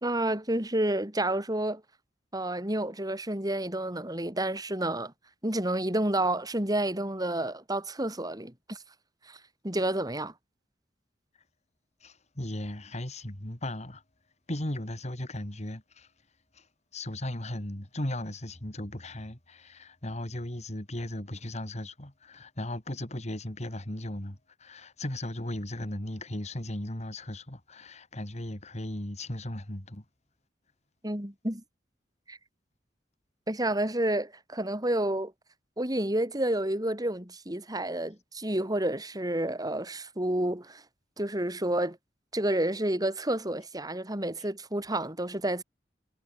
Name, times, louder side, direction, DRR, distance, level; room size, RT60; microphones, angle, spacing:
voice 1, 0.0-1.8 2.3-5.1 5.4-8.8 9.3-9.4 9.6-10.3 31.0-31.6 32.3-32.4 33.5-35.3 35.8-40.8 41.2-42.0 42.3-45.6, right 1 dB, 20° right, 4.2 m, -30 dB
voice 2, 12.0-14.0 14.5-16.1 16.5-16.7 16.9-30.0, left 1 dB, 40° left, 3.2 m, -37 dB
head